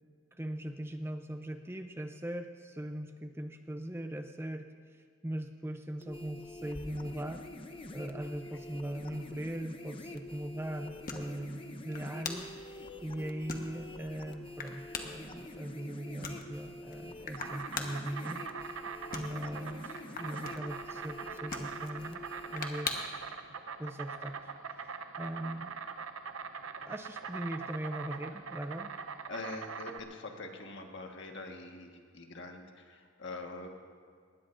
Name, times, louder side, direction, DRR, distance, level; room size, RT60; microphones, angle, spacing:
voice 1, 0.3-7.4 7.9-18.8 19.1-22.2 22.5-23.1 23.8-25.8 26.8-28.9, right 1 dB, 10° right, 6 dB, 0.5 m, -40 dB
sound 1, 6.0-22.6, left 2 dB, 25° left, 0.8 m, -47 dB
sound 2, 6.6-23.3, left 4 dB, 40° left, 1.2 m, -46 dB
Insect, 17.0-30.0, right 5 dB, 75° right, 0.7 m, -42 dB
voice 2, 29.3-33.7, left 2 dB, 60° left, 3 dB, 1.5 m, -44 dB
20.5 x 18.5 x 2.6 m, 2.1 s
head